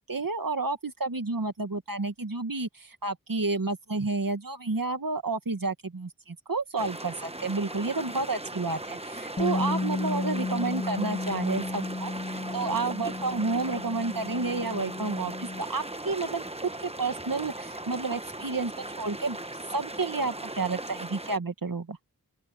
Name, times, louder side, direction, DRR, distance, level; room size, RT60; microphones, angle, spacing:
voice 1, 0.1-12.1 12.5-18.7 19.0-19.4 19.7-22.0, right 3 dB, 75° right, 2.0 m, -30 dB
sound 1, 6.8-21.4, right 1 dB, 20° right, 1.2 m, -38 dB
Bass guitar, 9.4-15.6, left 3 dB, 25° left, 0.6 m, -33 dB
open air
wide cardioid pair, 50°, 34 cm